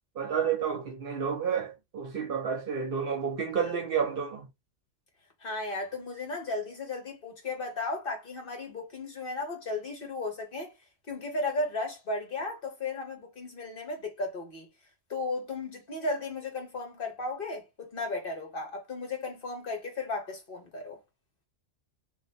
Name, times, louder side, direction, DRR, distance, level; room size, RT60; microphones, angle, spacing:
voice 1, 0.2-4.5, right 7 dB, 55° right, 0.8 m, -30 dB
voice 2, 5.4-10.7 11.1-14.7 15.1-21.0, left 2 dB, 50° left, 1.1 m, -35 dB
2.9 x 2.2 x 4.1 m
omnidirectional pair, 1.3 m